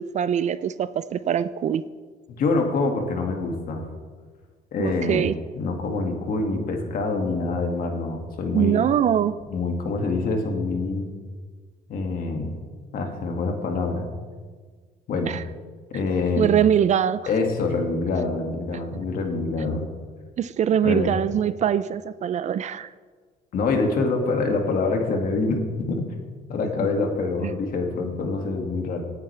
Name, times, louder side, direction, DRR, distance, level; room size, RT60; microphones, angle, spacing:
voice 1, 0.0-1.8 4.8-5.4 8.5-9.3 15.3-15.4 16.4-17.3 20.4-22.9 27.4-27.5, right 9 dB, 45° right, 15 dB, 0.4 m, -23 dB
voice 2, 2.3-3.9 4.7-5.2 5.6-8.9 9.5-11.1 11.9-12.6 12.9-14.0 15.1-15.3 15.9-16.5 17.3-19.9 20.8-21.2 23.5-26.1 26.5-29.0, left 3 dB, 60° left, 2 dB, 2.2 m, -25 dB
18.0 x 9.3 x 3.4 m, 1.5 s
cardioid pair, 110°, 17 cm